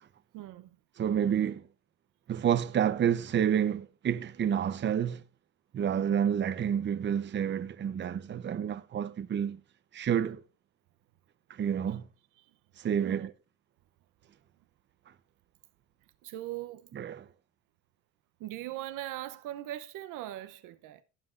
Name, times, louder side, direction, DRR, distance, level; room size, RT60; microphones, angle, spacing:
voice 1, 0.3-0.8 5.9-6.2 12.4-12.6 13.0-13.3 16.2-16.9 18.4-21.0, right 14 dB, 65° right, 0.8 m, -40 dB
voice 2, 1.0-1.7 2.3-5.2 5.7-9.6 9.9-10.4 11.5-12.0 12.8-13.3 16.9-17.3, right 8 dB, 35° right, 0.8 m, -29 dB
17.0 x 7.7 x 2.5 m
supercardioid pair, 95°, 33 cm